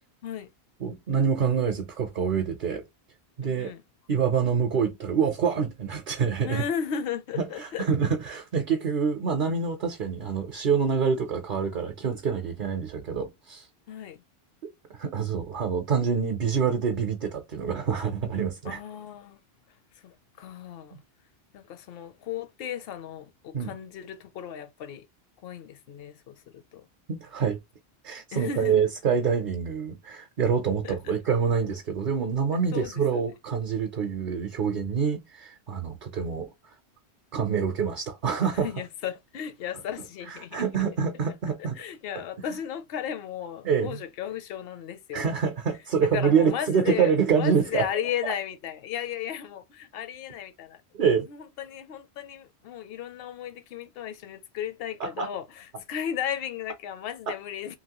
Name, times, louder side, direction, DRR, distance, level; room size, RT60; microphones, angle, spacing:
voice 1, 0.8-2.8 3.4-3.7 4.1-6.6 7.4-13.7 14.6-18.8 23.5-23.7 27.1-27.6 28.0-36.5 37.3-38.7 40.3-41.8 43.6-44.0 45.1-47.9 48.2-48.3 50.9-51.3 55.0-55.3 57.3-57.4, right 6 dB, 55° right, 0.7 m, -26 dB
voice 2, 3.4-3.8 6.4-7.9 13.9-14.2 18.6-19.4 20.0-21.0 21.5-25.0 25.4-26.9 28.3-28.9 30.8-31.1 32.7-33.2 38.5-40.6 41.8-45.3 46.1-50.8 51.3-57.8, left 9 dB, 70° left, 0.8 m, -35 dB
2.9 x 2.8 x 2.9 m
omnidirectional pair, 1.1 m